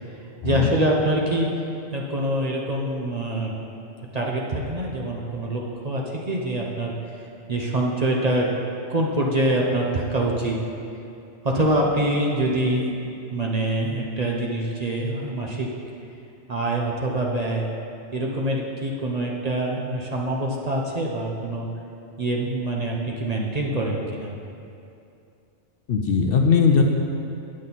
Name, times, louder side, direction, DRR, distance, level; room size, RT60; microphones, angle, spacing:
voice 1, 0.4-1.5 1.9-3.5 4.1-7.0 7.5-8.5 8.9-10.6 11.4-13.0 13.3-15.7 16.5-17.7 18.1-21.7 22.2-24.3, right 1 dB, 40° right, -1 dB, 0.7 m, -25 dB
voice 2, 25.9-26.8, left 6 dB, 60° left, 2 dB, 0.8 m, -19 dB
8.8 x 7.4 x 4.1 m, 2.6 s
omnidirectional pair, 1.2 m